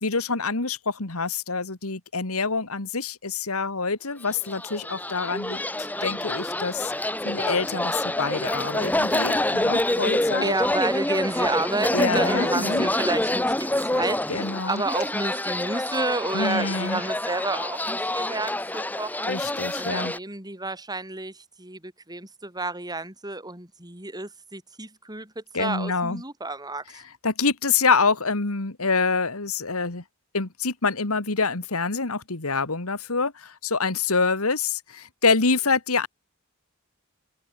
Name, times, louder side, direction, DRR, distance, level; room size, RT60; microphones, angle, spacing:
voice 1, 0.0-6.9 7.2-10.5 11.9-12.9 14.3-14.8 16.3-17.0 19.3-20.1 25.5-26.2 27.2-30.0 30.3-36.1, left 4 dB, 85° left, 2.3 m, -26 dB
sound 1, 4.4-20.2, left 1 dB, 10° left, 1.4 m, -27 dB
voice 2, 10.4-14.2 14.7-19.3 19.8-27.0, right 2 dB, 20° right, 7.8 m, -30 dB
head